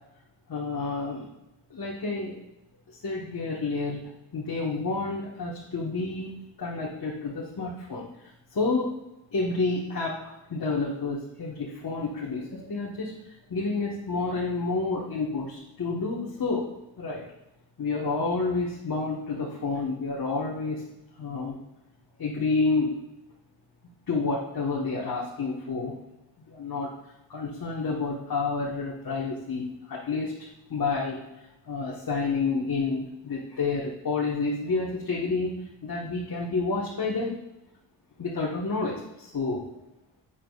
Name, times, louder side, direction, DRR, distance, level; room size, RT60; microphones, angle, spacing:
voice 1, 0.5-1.3 1.7-2.4 2.9-4.0 4.3-8.1 8.5-8.9 9.3-13.1 13.5-16.7 17.0-17.2 17.8-20.8 21.2-21.6 22.2-22.9 24.1-25.9 26.5-26.9 27.3-30.4 30.7-31.2 31.7-37.3 38.2-39.6, left 3 dB, 50° left, -5 dB, 1.6 m, -29 dB
9.2 x 8.6 x 2.5 m, 0.93 s
cardioid pair, 65°, 45 cm